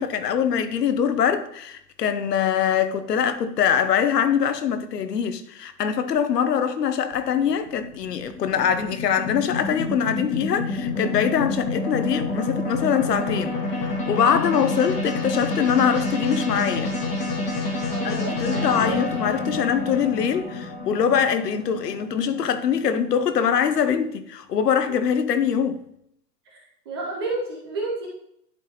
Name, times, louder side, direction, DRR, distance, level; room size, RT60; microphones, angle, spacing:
voice 1, 0.0-16.9 17.7-17.8 18.0-25.8, left 8 dB, 70° left, 0.9 m, -23 dB
sound 1, 7.1-23.5, left 3 dB, 15° left, 1.3 m, -28 dB
voice 2, 17.9-19.2 24.9-25.0 26.5-26.6 26.9-28.1, right 3 dB, 15° right, 0.5 m, -31 dB
10.5 x 4.3 x 3.0 m
hypercardioid pair, 145°, 50 cm